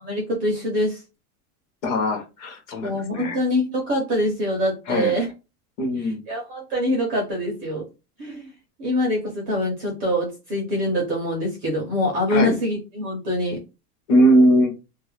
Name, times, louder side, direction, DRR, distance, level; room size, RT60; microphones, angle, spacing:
voice 1, 0.0-1.0 2.8-5.3 6.0-7.9 8.2-8.5 8.8-13.6, equal, 20° right, -1 dB, 0.4 m, -24 dB
voice 2, 1.8-3.4 4.9-5.1 5.8-6.2 12.3-12.5 14.1-14.7, equal, 35° left, 3 dB, 0.7 m, -20 dB
2.3 x 2.1 x 3.1 m, 0.28 s
supercardioid pair, 145°, 48 cm